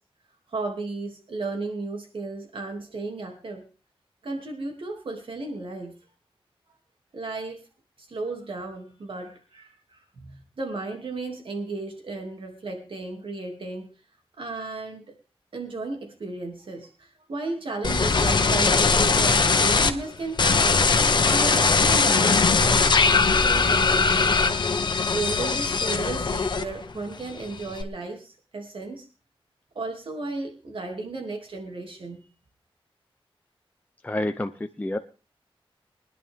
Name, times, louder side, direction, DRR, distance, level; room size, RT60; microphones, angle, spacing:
voice 1, 0.5-3.6 4.2-5.9 7.1-7.6 8.0-13.9 14.4-15.1 15.5-21.0 21.2-22.8 23.1-24.3 25.1-29.1 29.7-32.2, right 3 dB, 65° right, 3 dB, 2.7 m, -34 dB
sound 1, 17.8-19.9 20.4-26.9 27.2-27.8, left 4 dB, 50° left, 1.2 m, -20 dB
voice 2, 34.0-35.0, left 1 dB, 15° left, 6 dB, 0.7 m, -29 dB
23.5 x 10.5 x 3.7 m, 0.35 s
wide cardioid pair, 130°, 10 cm